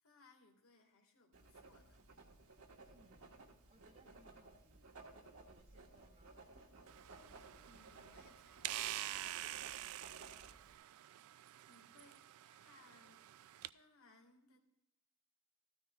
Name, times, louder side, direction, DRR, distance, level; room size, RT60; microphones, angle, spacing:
voice 1, 0.0-2.0 7.6-8.9 11.7-13.3 13.6-14.6, left 3 dB, 85° left, 4 dB, 1.8 m, -67 dB
Writing, 1.3-10.7, right 3 dB, 85° right, 1.4 m, -58 dB
voice 2, 2.9-3.4 3.7-5.0 5.5-6.8, right 1 dB, 35° right, -2 dB, 1.0 m, -70 dB
sound 1, 6.9-13.7, right 14 dB, 70° right, 0.3 m, -47 dB
14.0 x 13.0 x 2.3 m, 0.87 s
head